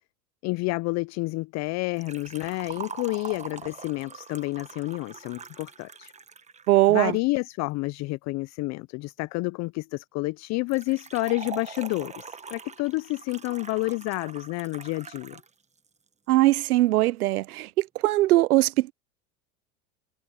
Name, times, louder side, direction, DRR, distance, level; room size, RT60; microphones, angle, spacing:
voice 1, 0.4-6.1 6.9-15.4, left 23 dB, 40° left, 0.5 m, -29 dB
Liquid, 2.0-6.9 10.7-15.5 15.8-15.9 16.8-16.9, right 5 dB, 15° right, 1.4 m, -43 dB
voice 2, 6.7-7.2 16.3-18.9, right 17 dB, 85° right, 0.6 m, -21 dB
hypercardioid pair, 95°, 43 cm